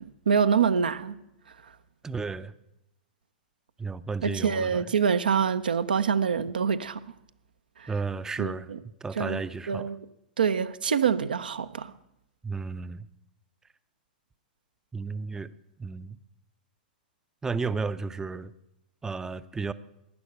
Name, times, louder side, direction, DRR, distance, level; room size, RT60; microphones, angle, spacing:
voice 1, 0.3-1.2 4.2-7.0 7.8-7.9 8.4-8.8 9.2-9.4 9.7-10.0 10.4-11.9, right 7 dB, 80° right, 0.5 m, -25 dB
voice 2, 2.0-2.5 3.8-4.9 7.9-8.7 9.0-9.9 12.4-13.1 14.9-15.5 15.8-16.2 17.4-18.5 19.0-19.7, right 4 dB, 10° right, 0.4 m, -33 dB
11.5 x 9.7 x 6.7 m
hypercardioid pair, 105°, 5 cm